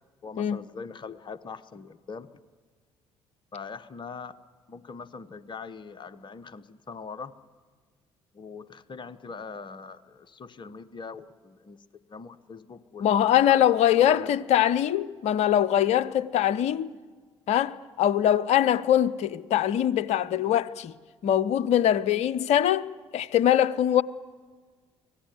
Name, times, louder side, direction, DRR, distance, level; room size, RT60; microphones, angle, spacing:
voice 1, 0.2-2.3 3.5-4.4 4.7-7.3 8.3-11.8 12.1-13.6 14.0-14.3, left 5 dB, 35° left, 1.1 m, -42 dB
voice 2, 13.0-16.9 17.5-20.9 21.2-22.8 23.1-24.0, left 11 dB, 55° left, 0.8 m, -22 dB
24.5 x 17.5 x 9.5 m
figure-of-eight pair, 50°, 14 cm